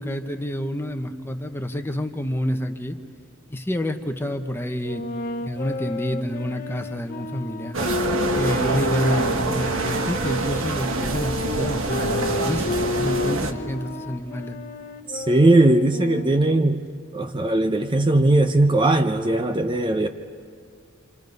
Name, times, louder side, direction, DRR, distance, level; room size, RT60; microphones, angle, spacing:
voice 1, 0.0-3.0 3.5-5.0 5.4-7.8 8.3-14.6, equal, 10° left, 6 dB, 0.9 m, -28 dB
sound 1, 4.8-10.4 11.1-16.7, left 2 dB, 40° left, 1.0 m, -31 dB
sound 2, 7.7-13.5, right 2 dB, 70° right, 1.3 m, -25 dB
voice 2, 15.1-16.9 17.1-20.1, right 2 dB, 25° right, 6 dB, 0.6 m, -19 dB
28.0 x 27.0 x 5.3 m, 2.3 s
head